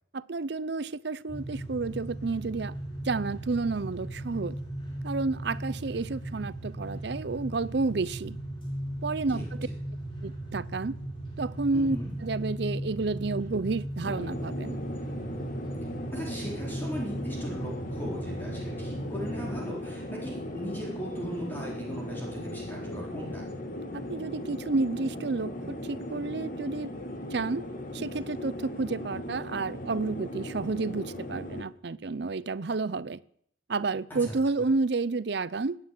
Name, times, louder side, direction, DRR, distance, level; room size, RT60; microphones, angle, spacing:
voice 1, 0.1-2.7 3.0-4.6 5.0-8.4 9.0-9.4 10.2-10.9 11.4-14.8 23.9-26.9 27.3-27.6 27.9-33.2 33.7-35.8, right 3 dB, 55° right, 0.6 m, -30 dB
sound 1, 1.3-19.6, right 1 dB, 25° left, 5.3 m, -37 dB
voice 2, 11.7-12.1 16.1-23.5 34.2-34.3, equal, 10° left, 4.0 m, -38 dB
sound 2, 14.0-31.6, left 1 dB, 45° left, 1.9 m, -38 dB
19.0 x 9.6 x 7.6 m
head